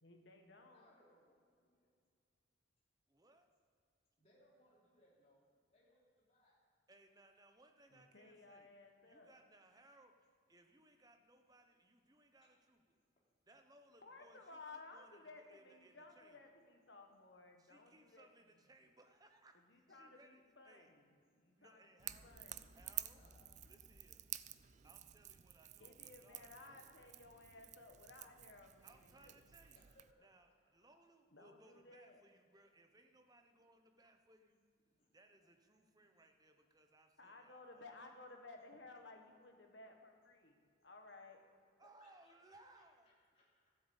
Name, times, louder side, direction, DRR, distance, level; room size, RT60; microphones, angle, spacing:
voice 1, 0.0-0.9 7.9-9.3 14.0-18.3 19.7-21.1 21.4-22.8 25.8-29.4 31.3-32.2 37.2-41.4, left 3 dB, 60° left, 3 dB, 1.6 m, -58 dB
voice 2, 0.7-1.9 4.2-5.5 5.7-6.6 12.4-12.5 19.9-20.1 21.1-21.3 22.5-22.6 23.1-23.5 26.4-27.0 29.6-30.4 34.8-35.1 35.4-35.5 41.5-43.7, left 1 dB, 30° left, -6 dB, 3.2 m, -72 dB
voice 3, 3.1-3.4 6.9-8.7 9.1-10.1 10.5-13.0 13.5-16.4 17.6-20.9 21.6-22.4 22.7-23.2 23.6-24.2 24.8-27.1 28.8-29.9 30.2-34.6 35.1-38.2 41.8-43.1, right 2 dB, 20° right, 5 dB, 0.9 m, -66 dB
Crackle / Crack, 22.0-30.1, right 14 dB, 35° right, 0.3 m, -51 dB
sound 1, 22.0-26.4, equal, 70° right, 3.0 m, -66 dB
13.0 x 7.9 x 8.2 m, 2.2 s
head